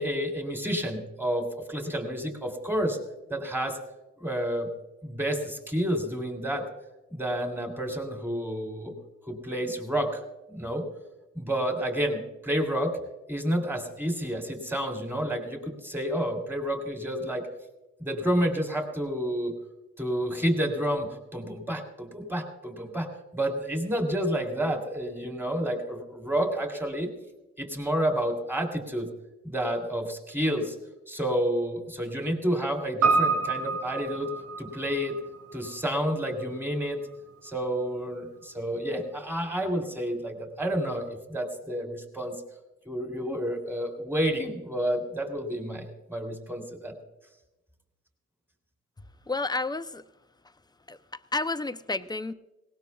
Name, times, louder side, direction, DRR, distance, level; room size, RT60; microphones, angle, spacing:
voice 1, 0.0-3.0 3.3-3.8 4.2-4.7 5.0-6.7 7.1-8.9 9.3-10.2 10.5-10.8 11.3-13.0 13.3-17.4 18.0-19.5 20.0-27.1 27.6-29.1 29.4-30.7 31.1-34.3 34.6-35.2 35.5-37.0 37.4-42.3 42.8-46.9, equal, 5° right, 4 dB, 3.2 m, -30 dB
Piano, 33.0-37.5 37.8-37.9, right 4 dB, 80° right, 6.0 m, -29 dB
voice 2, 49.3-50.0 50.9-51.0 51.3-52.3, left 3 dB, 15° left, 11 dB, 0.6 m, -30 dB
19.5 x 18.5 x 2.4 m, 1.0 s
cardioid pair, 90°, 30 cm